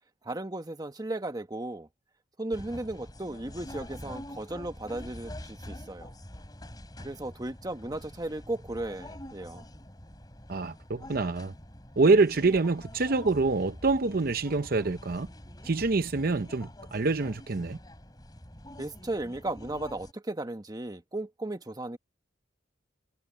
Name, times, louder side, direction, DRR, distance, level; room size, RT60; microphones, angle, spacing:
voice 1, 0.2-1.9 2.4-6.1 7.0-9.6 18.8-22.0, right 2 dB, 20° right, 1.2 m, -35 dB
sound 1, 2.5-20.1, left 1 dB, 20° left, 3.4 m, -46 dB
voice 2, 10.5-11.5 12.0-15.3 15.6-17.8, right 3 dB, 50° right, 0.7 m, -26 dB
head